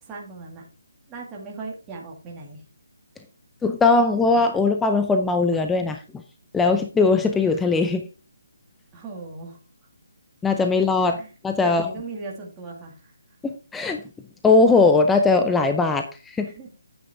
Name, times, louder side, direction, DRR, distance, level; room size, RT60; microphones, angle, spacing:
voice 1, 0.0-0.7 1.1-2.6 8.9-9.6 11.0-11.3 11.6-13.1 16.4-16.7, right 3 dB, 10° right, -3 dB, 2.2 m, -38 dB
voice 2, 3.6-6.0 6.5-8.0 10.4-11.2 11.4-11.9 13.4-14.0 14.4-16.5, left 3 dB, 5° left, 6 dB, 0.5 m, -19 dB
9.5 x 7.3 x 3.6 m, 0.32 s
hypercardioid pair, 170°, 0 cm